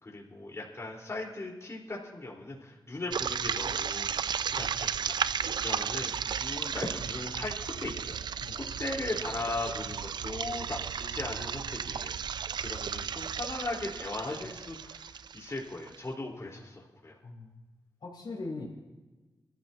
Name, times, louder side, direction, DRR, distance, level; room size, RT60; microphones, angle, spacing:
voice 1, 0.0-5.2 5.5-8.2 8.5-12.1 12.6-17.2, left 2 dB, 40° left, -3 dB, 3.9 m, -38 dB
sound 1, 3.1-16.0, right 7 dB, 75° right, 0.4 m, -34 dB
voice 2, 17.2-17.6 18.0-18.7, left 3 dB, 70° left, -4 dB, 3.9 m, -40 dB
24.0 x 14.0 x 2.8 m, 1.2 s
cardioid pair, 60°, 8 cm